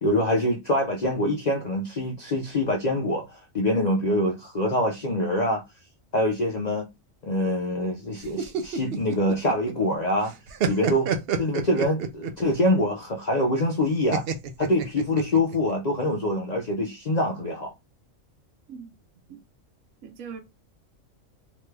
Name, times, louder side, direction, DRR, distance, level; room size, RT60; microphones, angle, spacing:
voice 1, 0.0-5.6 6.1-6.9 7.2-10.3 10.7-14.2 14.6-17.7, left 1 dB, 55° left, 0.4 m, -25 dB
sound 1, 8.2-9.9 10.2-12.5 14.1-15.6, right 6 dB, 65° right, 0.6 m, -28 dB
voice 2, 20.0-20.4, right 6 dB, 85° right, 1.2 m, -40 dB
2.9 x 2.3 x 3.2 m
omnidirectional pair, 1.4 m